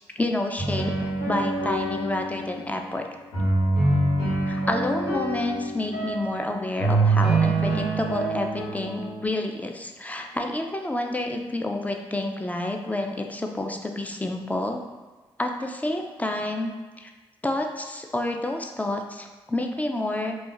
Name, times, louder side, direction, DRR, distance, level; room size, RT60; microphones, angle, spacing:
voice 1, 0.2-3.0 4.5-14.8 15.4-17.1 17.4-20.4, left 1 dB, 15° left, 3 dB, 0.4 m, -29 dB
sound 1, 0.6-2.6 3.3-6.3 6.8-9.2, right 2 dB, 85° left, 1.0 m, -25 dB
2.4 x 2.2 x 3.8 m, 1.3 s
supercardioid pair, 45°, 11 cm